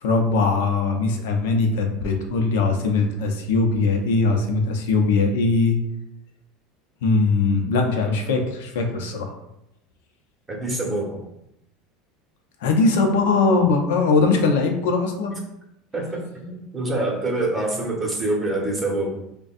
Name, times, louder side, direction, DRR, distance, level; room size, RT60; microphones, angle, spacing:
voice 1, 0.0-5.8 7.0-9.3 12.6-15.4, left 3 dB, 80° left, 4 dB, 0.7 m, -20 dB
voice 2, 10.5-11.2 15.9-19.2, right 2 dB, 15° right, -2 dB, 1.1 m, -26 dB
5.2 x 2.3 x 2.5 m, 0.83 s
supercardioid pair, 105°, 0 cm